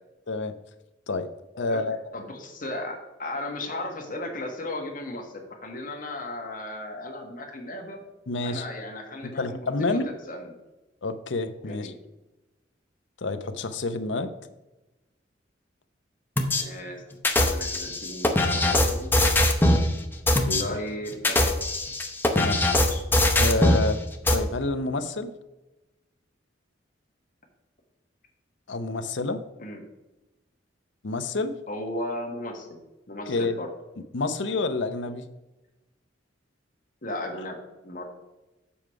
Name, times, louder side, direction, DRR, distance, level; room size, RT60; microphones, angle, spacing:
voice 1, 1.6-2.2 8.3-8.7 9.2-10.1 11.0-11.9 13.2-14.3 20.4-20.7 22.3-22.8 23.4-24.0 24.3-25.3 28.7-29.4 31.0-31.6 33.3-33.6 34.1-35.3, left 3 dB, 75° left, 9 dB, 0.7 m, -28 dB
voice 2, 2.1-8.0 8.4-10.5 11.6-12.0 16.4-17.0 17.4-19.1 20.6-21.5 22.7-23.0 23.4-23.5 29.6-29.8 31.7-32.8 33.1-33.7 37.0-37.6 37.8-38.0, left 1 dB, 45° left, 1 dB, 1.6 m, -36 dB
sound 1, 16.4-16.6 17.2-19.9 20.3-20.6 21.1-23.9 24.3-24.4, left 1 dB, 10° left, 0.7 m, -21 dB
7.1 x 4.8 x 5.8 m, 1.0 s
head